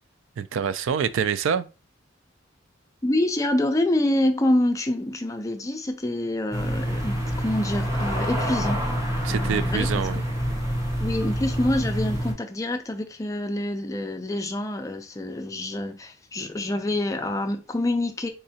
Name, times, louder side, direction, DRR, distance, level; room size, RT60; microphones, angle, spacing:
voice 1, 0.4-1.7 9.2-10.2, right 7 dB, 70° right, 0.3 m, -26 dB
voice 2, 3.0-8.8 9.3-10.2 11.0-18.3, left 1 dB, 15° left, 0.4 m, -26 dB
sound 1, 6.5-12.3, equal, 15° right, 0.9 m, -27 dB
3.7 x 3.2 x 2.7 m
head